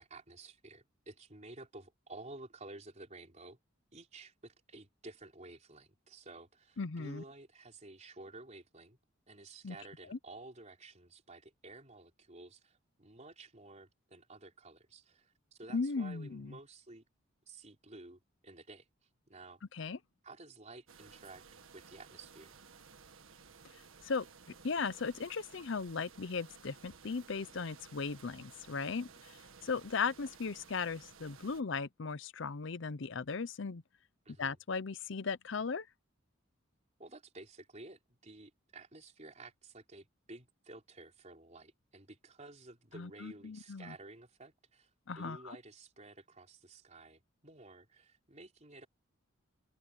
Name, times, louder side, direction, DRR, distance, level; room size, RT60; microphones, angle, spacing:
voice 1, 0.0-3.6 3.9-9.0 9.3-17.0 17.5-18.9 19.3-19.6 20.2-21.4 21.7-22.6 34.3-34.6 37.0-48.9, right 2 dB, 35° right, 3.9 m, -53 dB
voice 2, 6.8-7.2 9.6-9.8 10.1-10.2 15.7-16.5 19.7-20.0 24.0-24.3 24.6-29.4 29.6-33.8 34.4-35.9 42.9-43.9 45.1-45.6, left 4 dB, 60° left, 0.6 m, -37 dB
sound 1, 20.9-31.6, right 5 dB, 75° right, 1.6 m, -57 dB
open air
head